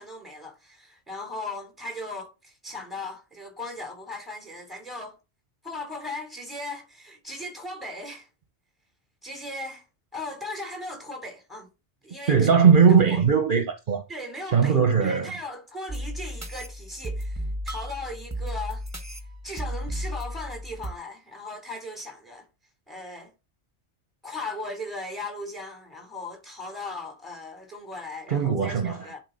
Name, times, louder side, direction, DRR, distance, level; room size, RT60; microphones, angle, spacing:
voice 1, 0.0-5.2 5.6-8.3 9.2-9.8 10.1-11.7 12.0-12.4 12.9-13.2 14.1-18.9 19.4-22.5 22.9-23.3 24.2-29.2, left 2 dB, ahead, 3.4 m, -37 dB
voice 2, 12.3-14.0 14.5-15.3 28.3-29.1, right 6 dB, 55° right, 1.0 m, -19 dB
sound 1, 15.9-20.9, equal, 15° right, 1.0 m, -34 dB
11.0 x 4.7 x 4.1 m
omnidirectional pair, 1.1 m